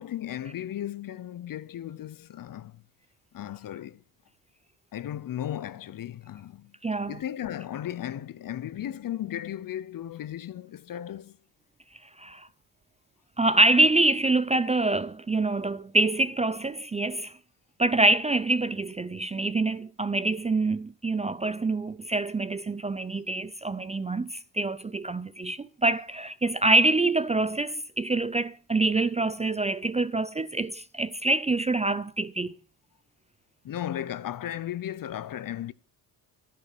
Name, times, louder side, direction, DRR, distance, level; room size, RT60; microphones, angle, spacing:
voice 1, 0.0-2.8 3.3-4.0 4.9-6.7 7.1-11.4 33.6-35.7, left 11 dB, 50° left, 0.8 m, -35 dB
voice 2, 6.8-7.2 12.2-12.5 13.4-17.3 17.8-32.5, right 2 dB, 15° right, 0.5 m, -25 dB
10.5 x 10.5 x 5.4 m
supercardioid pair, 70°, 43 cm